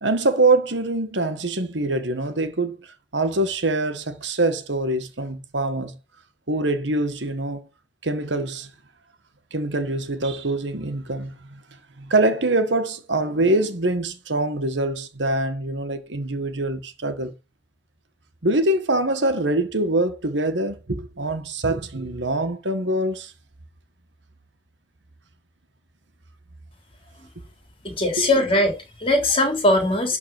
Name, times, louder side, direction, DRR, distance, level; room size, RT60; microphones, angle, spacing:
voice 1, 0.0-6.0 6.5-7.6 8.0-8.7 9.5-11.6 12.0-17.3 18.4-23.3 28.2-28.3, right 2 dB, 85° right, 1.6 m, -24 dB
voice 2, 27.8-30.2, left 1 dB, 30° left, 3.4 m, -20 dB
12.0 x 4.1 x 7.8 m
head